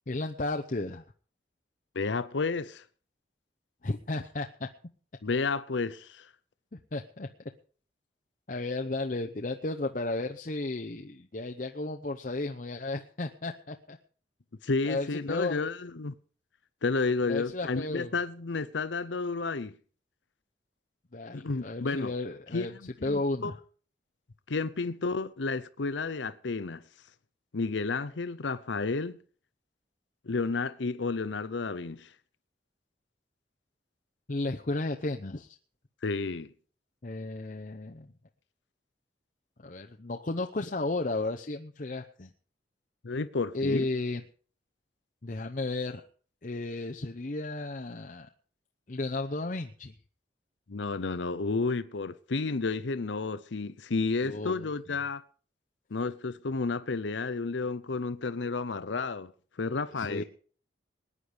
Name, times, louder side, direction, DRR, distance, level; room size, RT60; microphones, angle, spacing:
voice 1, 0.1-1.0 3.8-4.7 6.7-7.3 8.5-14.0 14.9-15.6 17.3-18.1 21.1-22.7 23.0-23.5 34.3-35.6 37.0-38.1 39.6-42.3 43.5-44.2 45.2-46.0 46.4-48.3 48.9-49.9 54.2-54.7 59.9-60.2, left 2 dB, 45° left, 0.8 m, -33 dB
voice 2, 1.9-2.8 5.2-6.3 14.6-16.1 16.8-19.7 21.3-22.1 22.5-23.5 24.5-26.8 27.5-29.2 30.2-32.1 36.0-36.5 43.0-43.9 50.7-55.2 55.9-59.3 59.6-60.2, left 4 dB, 85° left, 0.7 m, -31 dB
20.0 x 9.8 x 5.0 m
head